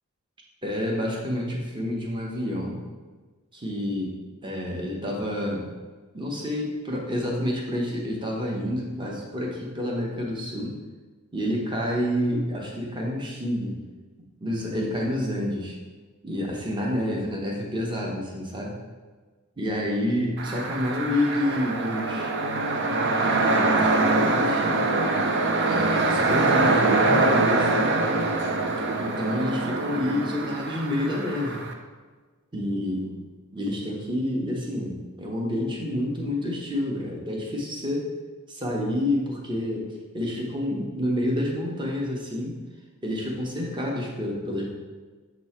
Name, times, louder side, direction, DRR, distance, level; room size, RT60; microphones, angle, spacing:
voice 1, 0.6-2.8 3.5-4.1 4.4-5.7 6.1-10.7 11.3-13.8 14.4-15.8 16.2-18.7 19.6-22.3 23.2-24.8 25.6-27.9 29.0-31.6 32.5-33.2 33.5-38.1 38.5-42.5 43.0-44.7, left 1 dB, 20° right, -1 dB, 0.9 m, -28 dB
sound 1, 20.4-31.7, right 3 dB, 55° right, 0.5 m, -24 dB
7.2 x 3.0 x 4.3 m, 1.4 s
head